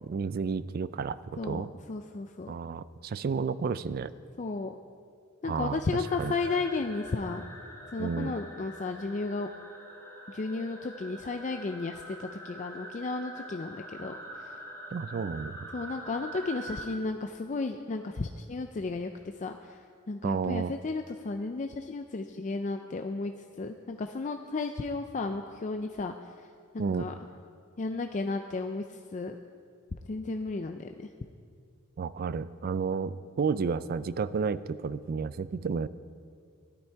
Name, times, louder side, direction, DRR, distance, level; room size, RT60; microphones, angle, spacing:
voice 1, 0.0-1.7 2.5-4.1 5.4-6.3 8.0-8.3 14.9-15.6 20.2-20.7 26.8-27.1 32.0-35.9, right 5 dB, 45° right, 16 dB, 0.3 m, -31 dB
voice 2, 1.9-2.5 4.4-4.8 5.4-7.4 7.9-9.5 10.3-14.6 15.7-19.1 19.4-26.1 26.7-27.1 27.8-29.4 30.1-31.1, left 3 dB, 35° left, 5 dB, 0.4 m, -34 dB
sound 1, 6.0-16.9, right 1 dB, 15° left, 2.4 m, -45 dB
13.0 x 11.5 x 4.6 m, 2.2 s
head